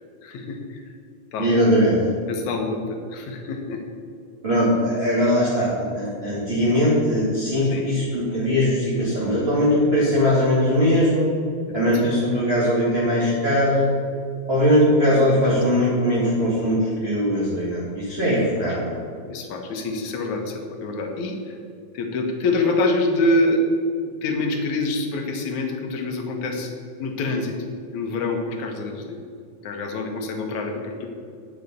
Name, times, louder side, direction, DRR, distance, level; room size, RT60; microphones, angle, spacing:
voice 1, 0.2-0.8 1.3-1.5 2.3-2.8 3.1-3.8 7.6-7.9 11.7-11.9 15.7-15.8 19.3-21.6 21.9-23.6 24.2-26.7 27.0-27.6 27.9-29.2 29.6-31.1, left 2 dB, 70° left, 2 dB, 2.4 m, -26 dB
voice 2, 1.4-2.0 4.4-11.3 11.7-13.9 14.5-18.9, equal, 25° right, -8 dB, 1.8 m, -20 dB
9.3 x 8.2 x 5.3 m, 2.4 s
omnidirectional pair, 3.7 m